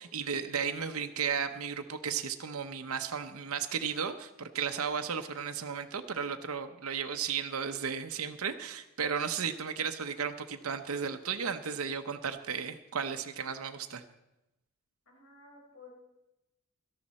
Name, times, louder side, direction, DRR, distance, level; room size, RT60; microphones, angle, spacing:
voice 1, 0.0-14.0, right 6 dB, 85° right, 7 dB, 0.8 m, -34 dB
voice 2, 15.1-15.9, left 4 dB, 85° left, 0 dB, 4.5 m, -54 dB
17.5 x 13.0 x 4.2 m, 0.94 s
head